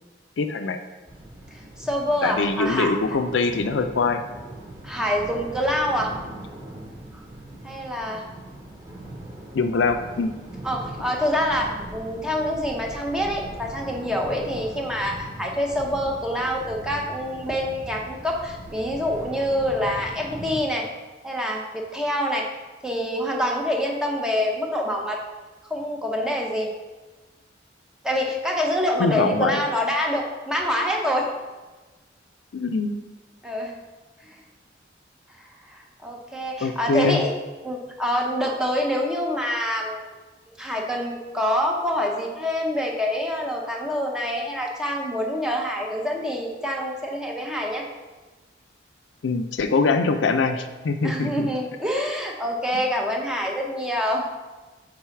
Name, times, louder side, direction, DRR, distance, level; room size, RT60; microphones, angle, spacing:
voice 1, 0.4-0.8 2.2-4.2 9.5-10.3 29.0-29.6 32.5-32.9 36.6-37.2 49.2-51.5, left 4 dB, 75° left, 7 dB, 0.4 m, -23 dB
sound 1, 1.1-20.6, right 1 dB, 20° right, 1.1 m, -40 dB
voice 2, 1.5-2.9 4.8-6.1 7.6-8.2 10.6-20.9 21.2-22.5 22.8-25.2 25.7-26.7 28.0-31.3 33.4-33.8 35.7-37.3 37.6-40.1 40.6-47.8 51.0-54.2, equal, 5° right, 0 dB, 0.7 m, -26 dB
4.7 x 3.9 x 5.7 m, 1.2 s
head